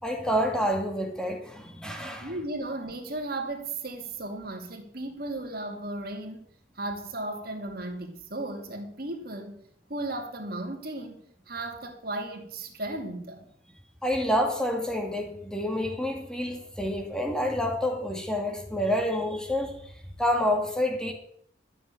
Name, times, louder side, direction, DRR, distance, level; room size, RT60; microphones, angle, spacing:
voice 1, 0.0-2.3 14.0-19.9 20.2-21.1, equal, 5° left, 2.1 m, -28 dB
voice 2, 2.2-6.5 6.8-11.2 11.5-13.5, right 2 dB, 55° right, 2.4 m, -35 dB
12.5 x 7.1 x 8.9 m
head